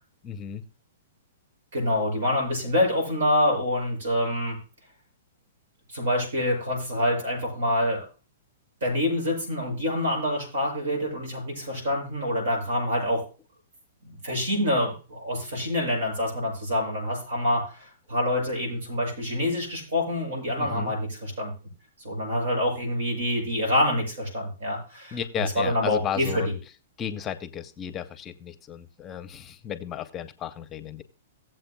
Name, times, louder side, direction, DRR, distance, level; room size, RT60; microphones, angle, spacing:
voice 1, 0.2-0.7 20.6-20.9 25.1-26.6 27.0-31.0, left 9 dB, 25° left, 11 dB, 0.7 m, -34 dB
voice 2, 1.7-4.6 5.9-8.0 8.8-13.2 14.0-21.5 22.0-26.4, left 1 dB, 80° right, 0 dB, 6.7 m, -26 dB
18.0 x 7.6 x 2.3 m, 0.35 s
hypercardioid pair, 130°, 0 cm